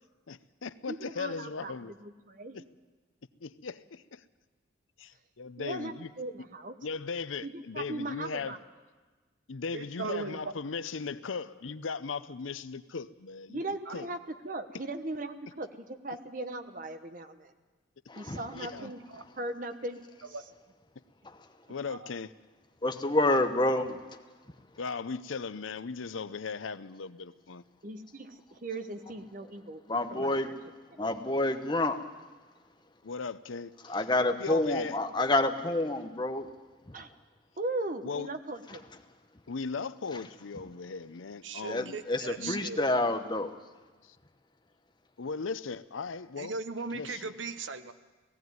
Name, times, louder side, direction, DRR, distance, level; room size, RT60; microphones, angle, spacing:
voice 1, 0.3-1.9 2.5-2.6 3.4-4.2 5.0-6.1 6.8-8.6 9.5-13.6 13.9-14.1 18.5-18.9 21.7-22.3 24.8-27.6 33.0-34.0 34.4-35.0 38.0-38.3 39.5-42.0 42.4-42.6 44.0-44.2 45.2-46.6 46.9-47.2, left 4 dB, 85° left, 15 dB, 0.7 m, -37 dB
voice 2, 0.9-1.7 2.0-2.6 5.6-6.8 7.4-8.6 13.5-14.2 14.4-17.5 18.1-19.1 19.4-20.0 27.8-29.8 30.1-30.5 31.0-31.1 36.9-37.1 37.6-38.8, right 2 dB, 45° right, 8 dB, 1.1 m, -38 dB
voice 3, 9.7-10.5 13.9-14.0 18.8-19.2 20.3-20.4 21.9-22.1 41.4-42.8 46.4-47.9, right 4 dB, 75° right, 11 dB, 1.0 m, -38 dB
voice 4, 18.1-18.4 21.2-21.4 22.8-24.0 29.9-30.5 31.0-32.0 33.9-36.5 41.7-43.5, left 2 dB, 25° left, 7 dB, 1.0 m, -28 dB
17.5 x 15.5 x 9.4 m, 1.3 s
head